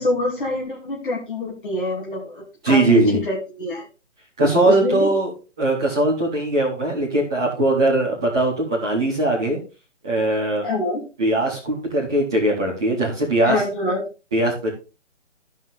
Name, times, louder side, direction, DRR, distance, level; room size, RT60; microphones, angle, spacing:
voice 1, 0.0-3.8 4.6-5.1 10.6-11.0 13.4-14.0, left 2 dB, 40° left, -1 dB, 2.7 m, -25 dB
voice 2, 2.6-3.2 4.4-5.3 5.6-9.6 10.0-10.6 11.2-13.6 14.3-14.7, right 2 dB, 5° right, -7 dB, 0.6 m, -20 dB
13.5 x 5.3 x 3.4 m, 0.31 s
figure-of-eight pair, 145°, 38 cm